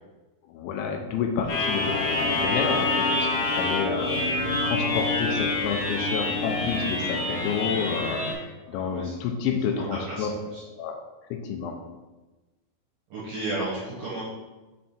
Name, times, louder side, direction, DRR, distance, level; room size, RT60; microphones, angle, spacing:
voice 1, 0.5-4.2 4.6-10.3 10.8-11.0 11.3-11.8, left 6 dB, 80° left, 3 dB, 2.9 m, -29 dB
sound 1, 1.5-8.3, left 2 dB, 65° left, 2.9 m, -26 dB
voice 2, 8.7-9.1 9.8-10.3 10.5-10.6 13.1-14.2, right 2 dB, 70° right, -6 dB, 2.2 m, -33 dB
7.5 x 3.4 x 4.4 m, 1.1 s
omnidirectional pair, 5.5 m